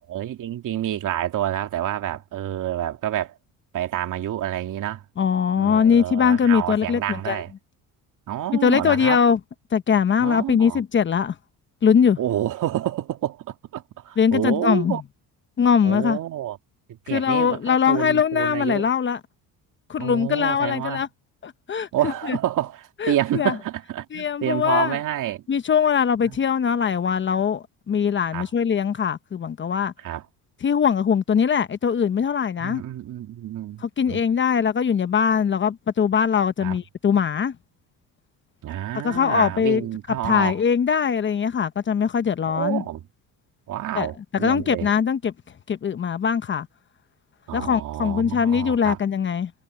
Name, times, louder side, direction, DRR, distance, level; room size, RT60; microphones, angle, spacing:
voice 1, 0.1-3.3 3.7-5.0 5.6-7.5 8.3-9.2 10.2-10.8 12.2-15.0 15.8-16.6 16.9-18.9 20.0-21.0 21.9-25.4 26.3-26.4 28.3-28.5 30.0-30.2 32.6-34.2 36.6-36.8 38.6-40.6 42.5-43.0 43.7-44.9 47.5-49.0, right 12 dB, 55° right, 2.7 m, -28 dB
voice 2, 5.2-7.4 8.6-9.4 9.7-11.4 11.8-12.2 14.2-15.0 15.6-16.2 17.1-19.2 19.9-21.1 21.4-22.4 23.0-23.5 24.1-25.0 25.5-29.9 30.6-32.8 33.8-37.6 39.0-39.9 40.2-42.8 43.9-45.3 45.7-46.7 47.5-49.5, left 7 dB, 30° left, 0.9 m, -21 dB
cardioid pair, 115°, 37 cm